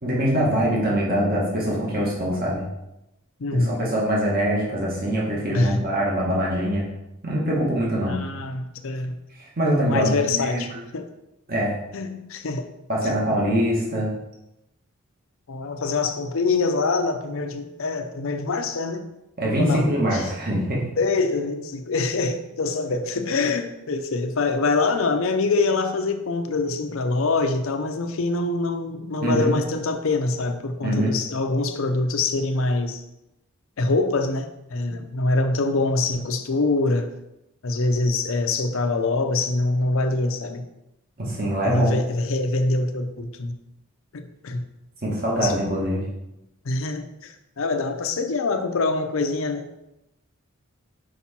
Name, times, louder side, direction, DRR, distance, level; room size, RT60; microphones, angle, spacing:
voice 1, 0.0-2.7 3.5-6.9 7.2-8.2 9.4-10.8 11.5-11.8 12.9-14.1 19.4-20.8 29.2-29.5 30.8-31.1 41.2-41.9 45.0-46.0, right 1 dB, 45° right, -4 dB, 1.5 m, -23 dB
voice 2, 3.4-4.0 5.5-5.8 8.1-9.2 9.7-11.1 11.9-12.7 13.0-13.1 15.5-19.1 19.6-20.2 21.0-33.0 33.8-37.1 37.6-40.7 41.6-43.5 44.1-44.6 45.4-45.6 46.6-49.7, left 3 dB, 60° left, 6 dB, 0.6 m, -24 dB
5.9 x 4.8 x 4.2 m, 0.91 s
head